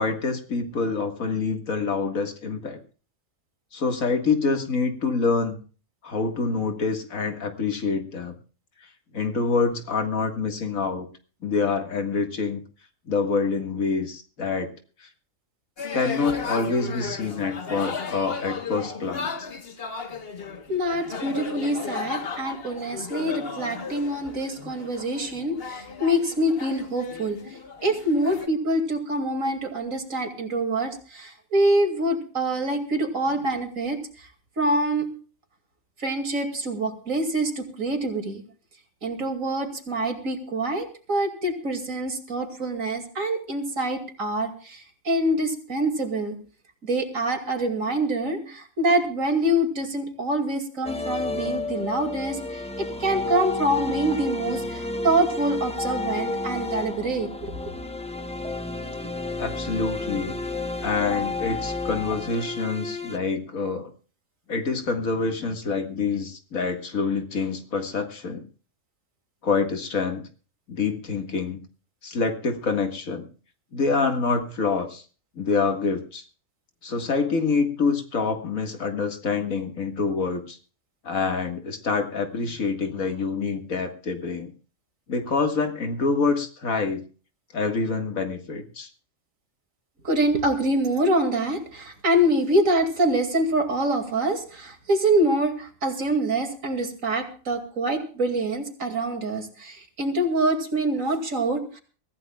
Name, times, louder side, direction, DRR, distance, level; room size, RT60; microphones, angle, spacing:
voice 1, 0.0-2.8 3.7-5.6 6.0-8.3 9.1-11.1 11.4-12.6 13.1-14.7 15.0-15.1 15.9-19.5 59.0-60.4 60.8-63.9 64.5-68.5 69.4-70.2 70.7-71.6 72.0-73.3 73.7-75.0 75.4-76.2 76.8-80.6 81.0-84.5 85.1-87.0 87.5-88.9, left 4 dB, 85° left, 5 dB, 2.3 m, -26 dB
sound 1, 15.8-28.5, left 5 dB, 45° left, 1.5 m, -35 dB
voice 2, 20.7-34.3 34.6-35.1 36.0-38.4 39.0-46.4 46.8-57.7 90.0-101.8, right 1 dB, 80° right, 5 dB, 2.9 m, -25 dB
sound 2, 50.8-63.2, left 2 dB, 5° left, 0.9 m, -31 dB
23.5 x 15.0 x 2.4 m, 0.38 s
omnidirectional pair, 1.4 m